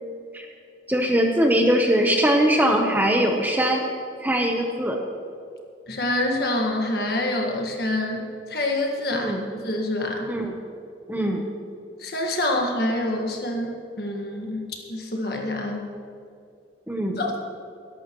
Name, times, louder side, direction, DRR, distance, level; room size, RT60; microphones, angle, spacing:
voice 1, 0.9-3.8 4.2-5.0 9.1-9.4 10.3-10.5 11.1-11.4 16.9-17.2, equal, 10° right, 2 dB, 0.9 m, -21 dB
voice 2, 5.9-10.3 12.0-15.9 17.2-17.3, left 1 dB, 55° left, 1 dB, 1.7 m, -26 dB
20.5 x 11.0 x 3.1 m, 2.4 s
head